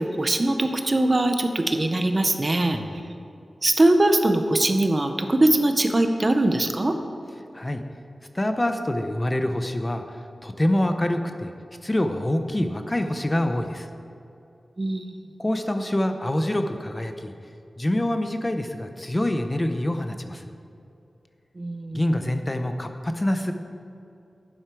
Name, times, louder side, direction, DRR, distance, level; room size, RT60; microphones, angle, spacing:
voice 1, 0.0-2.8 3.6-7.0 14.8-15.1 21.6-22.2, right 1 dB, 35° right, 6 dB, 0.8 m, -21 dB
voice 2, 8.3-10.0 10.4-11.5 11.8-13.9 15.4-17.3 17.8-20.5 21.9-23.5, left 1 dB, 25° left, 6 dB, 0.7 m, -25 dB
11.5 x 9.3 x 4.7 m, 2.7 s
wide cardioid pair, 80°, 0 cm